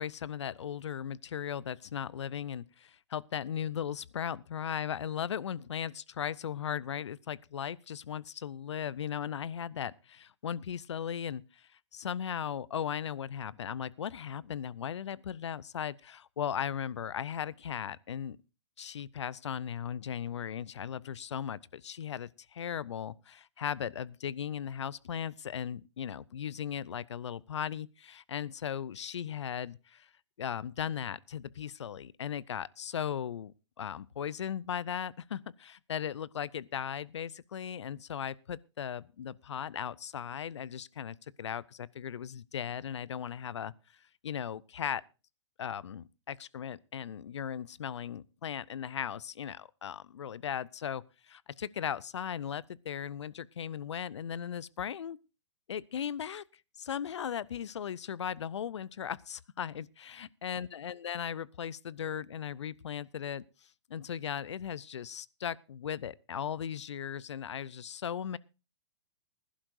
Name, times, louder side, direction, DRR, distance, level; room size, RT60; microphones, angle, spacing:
voice 1, 0.0-18.4 18.8-30.1 30.4-43.7 44.2-45.0 45.6-55.2 55.7-56.4 56.8-63.4 63.9-68.4, left 8 dB, 75° left, 0.6 m, -37 dB
21.0 x 11.5 x 2.6 m
hypercardioid pair, 115°, 15 cm